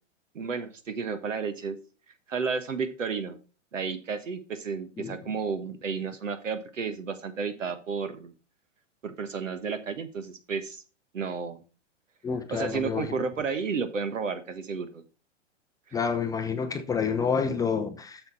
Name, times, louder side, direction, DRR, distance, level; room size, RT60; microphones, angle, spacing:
voice 1, 0.3-1.8 2.3-3.4 3.7-8.3 9.0-10.8 11.1-11.6 12.5-15.0 15.9-16.0, right 5 dB, 85° right, 1.4 m, -32 dB
voice 2, 12.2-13.1 15.9-18.2, left 6 dB, 10° left, 0.4 m, -28 dB
7.5 x 7.0 x 4.3 m
hypercardioid pair, 115°, 37 cm